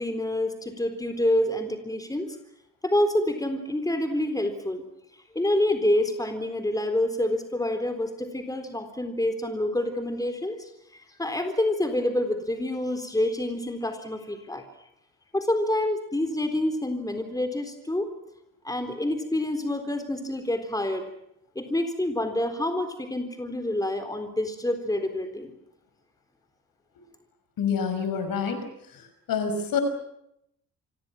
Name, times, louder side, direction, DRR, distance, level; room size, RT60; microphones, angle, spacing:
voice 1, 0.0-2.3 2.8-4.8 5.3-14.6 15.3-18.1 18.6-21.1 21.6-25.5, left 1 dB, 10° left, 8 dB, 3.9 m, -27 dB
voice 2, 27.6-28.7 29.3-29.8, left 6 dB, 55° left, 9 dB, 5.7 m, -26 dB
29.0 x 26.0 x 6.0 m, 0.78 s
figure-of-eight pair, 45°, 41 cm